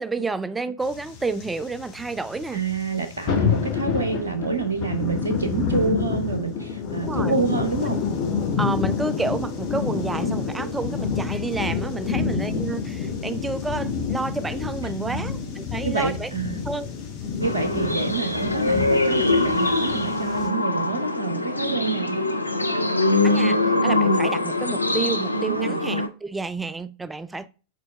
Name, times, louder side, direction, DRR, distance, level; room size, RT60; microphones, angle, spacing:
voice 1, 0.0-2.6 7.0-7.3 8.6-16.3 16.6-16.9 23.2-27.5, right 3 dB, 10° right, 0.4 m, -30 dB
sound 1, 0.8-20.5, left 6 dB, 40° left, 2.0 m, -28 dB
voice 2, 2.5-8.0 12.1-12.3 14.8-15.3 15.8-16.7 17.4-22.3 25.5-25.8, right 5 dB, 75° right, 0.7 m, -28 dB
sound 2, 17.4-26.1, left 2 dB, 85° left, 0.6 m, -23 dB
7.4 x 4.5 x 3.5 m
figure-of-eight pair, 90°, 0 cm